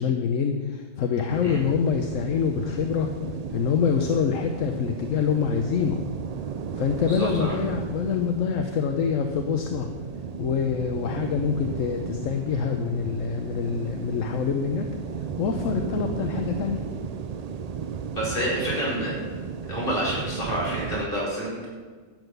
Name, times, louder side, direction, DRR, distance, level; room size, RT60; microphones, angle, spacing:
voice 1, 0.0-3.1 3.5-6.1 6.7-9.9 10.4-14.9 15.1-16.9, left 6 dB, 75° left, 5 dB, 1.2 m, -26 dB
sound 1, 1.3-21.1, right 6 dB, 70° right, 0.3 m, -34 dB
voice 2, 7.1-7.5 18.1-19.2 19.7-21.7, equal, 40° left, -6 dB, 5.0 m, -28 dB
12.0 x 8.0 x 6.7 m, 1.5 s
omnidirectional pair, 1.4 m